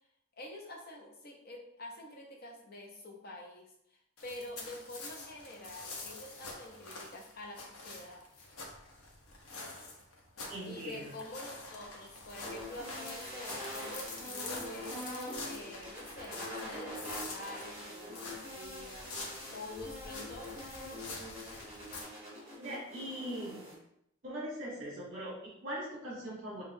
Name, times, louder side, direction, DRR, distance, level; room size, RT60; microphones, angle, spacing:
voice 1, 0.4-8.2 10.7-15.0 15.4-19.1 19.5-20.7, left 1 dB, 45° left, 0 dB, 0.7 m, -47 dB
sound 1, 4.2-22.0, left 3 dB, 85° left, 0.8 m, -46 dB
voice 2, 10.5-11.1 22.6-23.7 24.2-26.6, equal, 40° right, -5 dB, 1.0 m, -41 dB
sound 2, 12.4-23.7, equal, 10° right, 1.3 m, -44 dB
5.5 x 2.4 x 2.6 m, 0.77 s
head